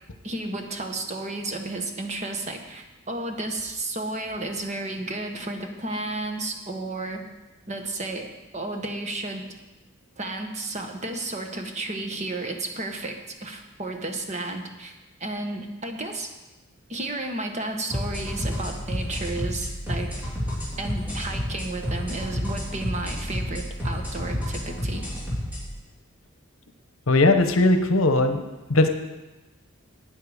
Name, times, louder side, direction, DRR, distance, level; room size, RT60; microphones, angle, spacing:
voice 1, 0.2-7.2 7.7-9.5 10.2-14.9 15.2-16.3 16.9-20.1 20.8-25.0, right 2 dB, 35° right, 4 dB, 1.2 m, -32 dB
sound 1, 17.9-25.6, equal, 10° right, 3.3 m, -30 dB
voice 2, 27.1-28.9, left 2 dB, 70° left, 7 dB, 0.9 m, -19 dB
12.0 x 8.7 x 5.0 m, 1.1 s
head